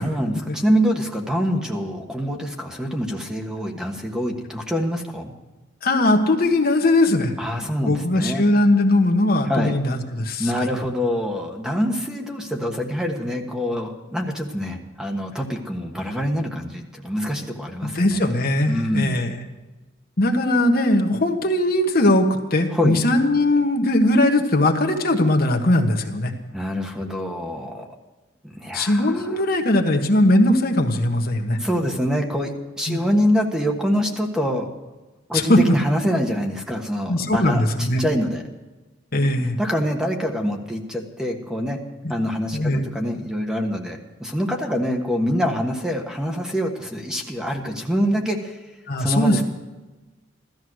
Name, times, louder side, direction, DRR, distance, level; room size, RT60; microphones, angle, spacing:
voice 1, 0.0-5.3 7.4-8.5 9.4-9.8 10.4-18.4 18.7-19.2 22.7-23.0 26.5-27.9 28.4-29.4 31.6-34.7 35.3-38.4 39.6-41.8 42.1-48.6 49.0-49.4, equal, 5° right, 2 dB, 1.4 m, -25 dB
voice 2, 5.8-7.3 7.8-10.7 17.8-19.4 20.2-26.3 28.7-31.6 32.9-33.0 35.3-35.6 37.1-38.0 39.1-39.6 42.0-42.1 42.5-42.9 48.9-49.4, left 1 dB, 50° left, 4 dB, 1.4 m, -20 dB
16.0 x 13.5 x 6.3 m, 1.1 s
head